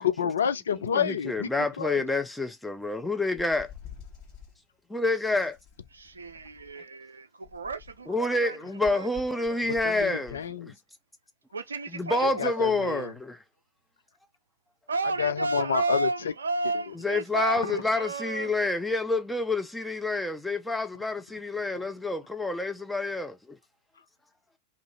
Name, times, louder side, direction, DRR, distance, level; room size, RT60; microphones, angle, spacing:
voice 1, 0.0-2.1 9.7-10.7 12.2-13.1 15.0-16.3 16.7-16.9 17.6-17.7 21.7-21.9, left 7 dB, 65° left, 0.4 m, -29 dB
voice 2, 0.9-3.7 4.9-5.6 8.1-10.4 11.9-13.4 17.0-23.6, left 2 dB, 5° left, 0.6 m, -28 dB
sound 1, 3.4-4.6 5.5-6.8 7.4-8.1 8.8-10.5, left 8 dB, 40° left, 1.3 m, -48 dB
voice 3, 5.9-8.6 8.8-9.1 9.5-9.7 11.5-12.6 14.9-18.5, right 3 dB, 75° right, 0.5 m, -32 dB
2.7 x 2.5 x 3.0 m
figure-of-eight pair, 90°, 0 cm